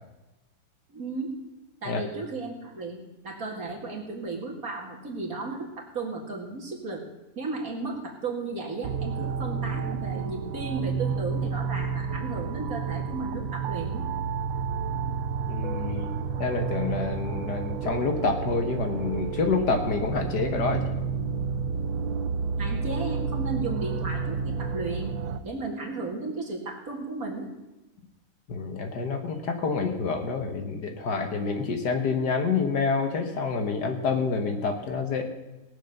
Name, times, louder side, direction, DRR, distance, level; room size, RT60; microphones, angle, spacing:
voice 1, 0.9-1.4 1.8-7.1 7.4-14.1 22.6-25.1 25.4-27.5, right 3 dB, 50° right, -1 dB, 2.6 m, -34 dB
sound 1, 8.8-25.4, right 6 dB, 90° right, 1.4 m, -30 dB
voice 2, 15.5-20.9 28.5-35.2, left 4 dB, 60° left, 5 dB, 1.8 m, -28 dB
18.0 x 7.5 x 6.6 m, 1.0 s
omnidirectional pair, 2.1 m